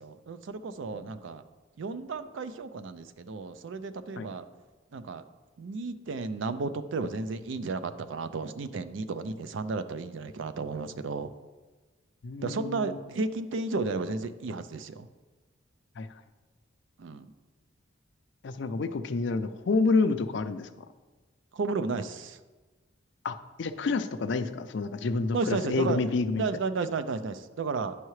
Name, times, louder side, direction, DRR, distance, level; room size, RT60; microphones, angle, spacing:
voice 1, 0.0-1.4 1.8-4.4 4.9-5.2 5.6-11.3 12.4-15.1 17.0-17.3 21.5-22.4 25.3-26.0 26.3-27.9, right 4 dB, 70° right, 11 dB, 0.4 m, -33 dB
voice 2, 12.2-13.0 16.0-16.1 18.4-20.7 23.2-26.5, left 3 dB, 65° left, 9 dB, 0.4 m, -28 dB
9.8 x 5.6 x 3.1 m, 1.3 s
head